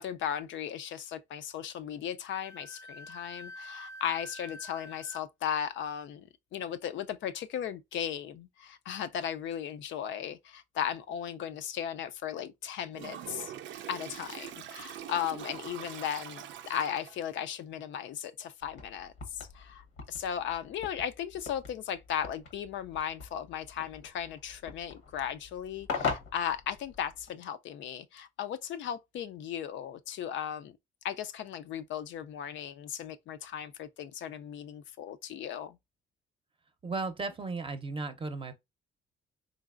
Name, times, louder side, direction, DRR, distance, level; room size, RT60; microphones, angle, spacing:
voice 1, 0.0-13.5 13.9-30.7 31.0-35.8, left 9 dB, 70° left, 0.4 m, -36 dB
Wind instrument woodwind instrument, 2.4-5.2, left 1 dB, 15° left, 0.5 m, -46 dB
Toilet flush, 12.9-17.3, right 10 dB, 70° right, 0.4 m, -44 dB
sound 1, 18.6-27.3, left 5 dB, 90° left, 1.0 m, -41 dB
voice 2, 36.8-38.5, right 3 dB, 25° right, 0.6 m, -35 dB
3.9 x 3.1 x 2.4 m
cardioid pair, 90°, 20 cm